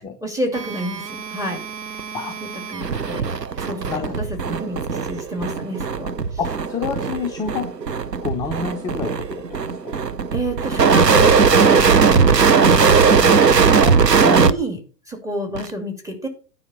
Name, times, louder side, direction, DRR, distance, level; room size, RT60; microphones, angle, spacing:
voice 1, 0.0-1.6 2.4-3.3 3.6-6.4 10.3-11.4 11.6-13.4 14.4-14.8 15.1-16.3, equal, 5° right, 3 dB, 2.6 m, -29 dB
sound 1, 0.5-14.5 15.6-15.7, right 5 dB, 90° right, 0.7 m, -18 dB
voice 2, 6.4-7.7 8.2-9.4 9.8-10.0 13.8-14.5, left 6 dB, 10° left, 4 dB, 0.4 m, -28 dB
9.7 x 5.5 x 5.4 m, 0.37 s
figure-of-eight pair, 95°, 48 cm